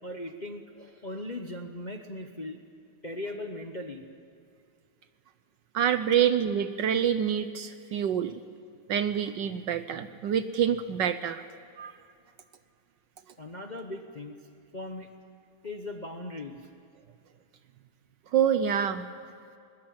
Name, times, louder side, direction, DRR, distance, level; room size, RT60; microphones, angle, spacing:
voice 1, 0.0-2.6 3.0-4.1 13.4-14.4 14.7-15.1 15.6-16.7, left 1 dB, 30° left, 5 dB, 0.8 m, -38 dB
voice 2, 5.7-8.4 8.9-11.4 11.8-11.9 18.3-19.1, right 8 dB, 65° right, 11 dB, 1.2 m, -26 dB
21.0 x 20.0 x 8.8 m, 2.5 s
omnidirectional pair, 2.4 m